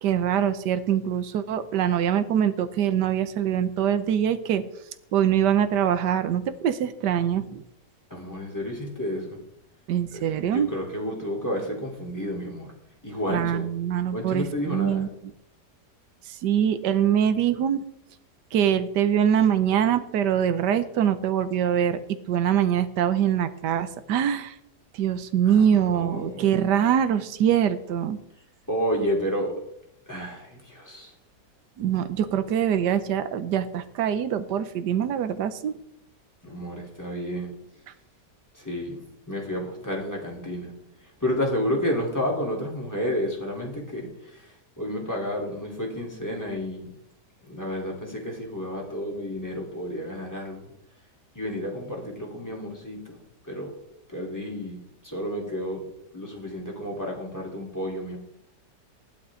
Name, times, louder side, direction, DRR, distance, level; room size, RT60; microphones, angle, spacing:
voice 1, 0.0-4.6 5.1-7.6 9.9-10.7 13.3-15.1 16.2-17.8 18.5-22.0 22.3-24.6 24.9-28.2 31.8-35.8, right 9 dB, 80° right, 11 dB, 1.5 m, -23 dB
voice 2, 8.1-9.4 10.1-12.7 13.0-13.7 14.1-15.1 25.5-26.5 28.7-29.6 30.1-31.1 36.4-37.5 38.5-40.7 41.0-46.9 47.4-50.7 51.3-53.2 53.4-53.7 54.1-55.8 56.1-58.2, equal, 10° left, -2 dB, 3.7 m, -31 dB
16.0 x 11.5 x 3.9 m, 0.77 s
omnidirectional pair, 1.8 m